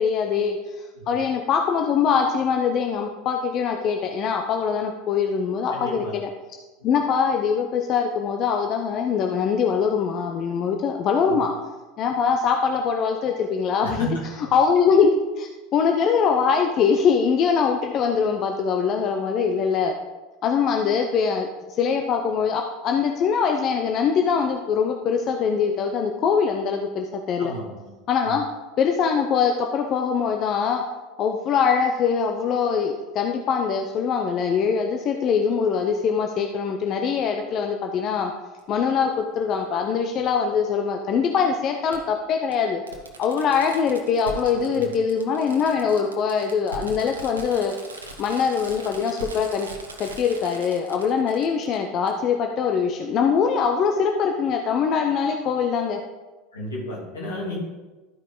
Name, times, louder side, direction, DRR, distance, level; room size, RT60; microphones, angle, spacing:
voice 1, 0.0-6.3 6.8-11.5 12.0-14.1 14.5-20.0 20.4-27.5 28.1-28.4 28.8-30.8 31.2-38.3 38.7-42.8 43.2-47.7 48.2-49.7 50.0-56.0, left 6 dB, 45° left, 3 dB, 0.7 m, -23 dB
voice 2, 5.7-6.1 11.3-11.4 13.8-14.2 27.4-27.9 28.2-28.4 44.7-44.9 56.5-57.6, equal, 80° left, -5 dB, 3.0 m, -33 dB
Fireworks, 38.6-38.7 40.2-40.3 41.9-42.0 42.5-42.6 42.9-51.8 52.1-52.2, right 2 dB, 90° right, 1.0 m, -40 dB
12.5 x 5.2 x 3.8 m, 1.2 s
hypercardioid pair, 80°, 0 cm